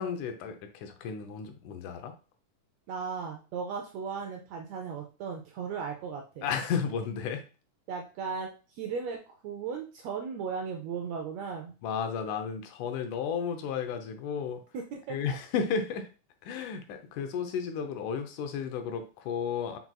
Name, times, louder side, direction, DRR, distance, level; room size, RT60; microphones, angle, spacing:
voice 1, 0.0-2.1 6.4-7.4 11.8-14.6 15.1-16.1 16.4-19.8, left 6 dB, 80° left, 7 dB, 2.1 m, -33 dB
voice 2, 2.9-6.5 7.9-11.8 14.7-15.4, right 5 dB, 80° right, 2 dB, 1.5 m, -36 dB
5.9 x 4.0 x 2.2 m, 0.34 s
omnidirectional pair, 3.5 m